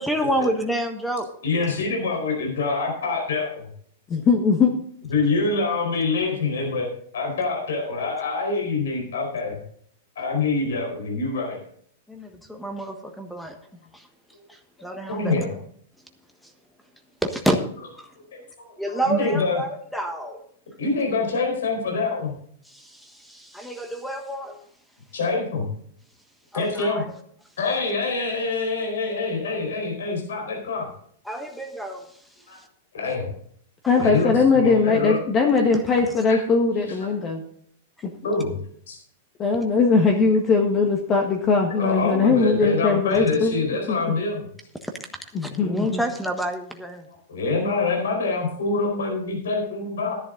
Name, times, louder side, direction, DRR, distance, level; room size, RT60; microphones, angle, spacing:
voice 1, 0.0-1.3 12.1-13.6 13.9-14.1 14.5-15.3 17.2-17.6 18.0-18.1 18.8-20.4 22.7-24.6 26.5-27.0 31.2-32.1 34.0-34.1 35.7-35.8 43.1-43.2 44.8-44.9 45.4-47.0, right 1 dB, ahead, 5 dB, 1.4 m, -28 dB
voice 2, 1.4-3.6 5.1-6.9 7.1-9.6 10.2-11.6 15.1-15.5 18.3-18.4 18.9-19.6 20.8-22.3 25.1-25.7 26.5-27.0 27.6-30.9 32.5-32.6 32.9-33.3 34.0-35.2 36.3-36.4 38.2-39.0 41.8-44.4 47.1-50.1, left 3 dB, 80° left, 1 dB, 4.6 m, -25 dB
voice 3, 4.1-4.7 33.9-37.4 38.0-38.1 39.4-43.5 43.9-44.2 45.3-46.0, left 4 dB, 30° left, 2 dB, 1.6 m, -20 dB
12.5 x 11.0 x 3.9 m, 0.62 s
hypercardioid pair, 125°, 0 cm